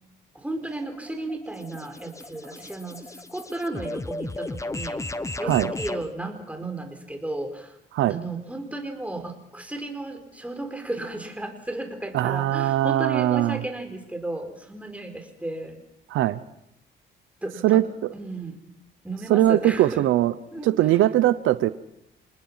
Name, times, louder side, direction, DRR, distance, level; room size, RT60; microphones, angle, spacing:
voice 1, 0.3-5.0 5.4-7.7 8.0-15.8 17.4-17.8 18.1-18.6 19.0-20.0 20.5-21.0, right 2 dB, 5° right, 5 dB, 4.6 m, -34 dB
sound 1, 0.6-6.1, left 2 dB, 15° left, 1.0 m, -35 dB
voice 2, 12.1-13.6 16.1-16.4 17.6-17.8 19.3-20.3 20.6-21.7, right 14 dB, 90° right, 15 dB, 0.8 m, -20 dB
27.5 x 20.0 x 5.7 m, 0.80 s
cardioid pair, 90°, 20 cm